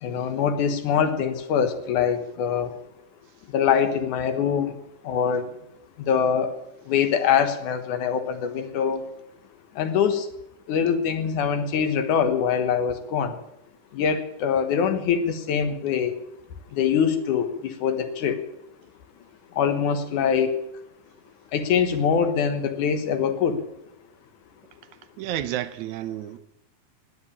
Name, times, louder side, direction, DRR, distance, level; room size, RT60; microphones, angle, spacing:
voice 1, 0.0-2.8 3.5-4.8 5.0-5.5 6.1-6.5 6.9-9.0 9.8-10.3 10.7-13.4 13.9-16.1 16.7-18.4 19.5-20.6 21.5-23.6, left 7 dB, 80° left, 2.9 m, -23 dB
voice 2, 25.2-26.4, right 12 dB, 80° right, 2.1 m, -30 dB
19.5 x 8.0 x 8.6 m
omnidirectional pair, 3.5 m